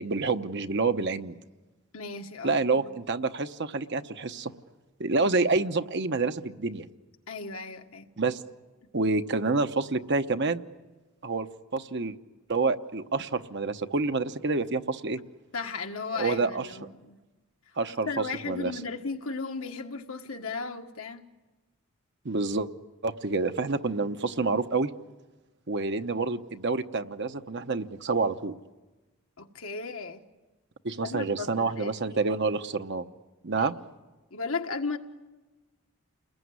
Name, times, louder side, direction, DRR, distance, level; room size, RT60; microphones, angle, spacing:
voice 1, 0.0-1.4 2.4-4.5 5.0-6.9 8.2-8.4 8.9-10.6 11.2-11.5 11.7-12.2 12.5-15.2 16.1-16.7 17.8-18.1 18.5-18.7 22.2-22.7 23.0-24.9 25.7-28.5 30.8-33.0 33.4-33.7, right 3 dB, 55° right, 1.0 m, -28 dB
voice 2, 1.9-3.0 7.3-8.1 15.5-17.2 18.1-21.3 29.4-30.2 31.0-31.9 33.6-33.7 34.3-35.0, left 4 dB, 80° left, 1.7 m, -35 dB
29.5 x 21.0 x 9.6 m
head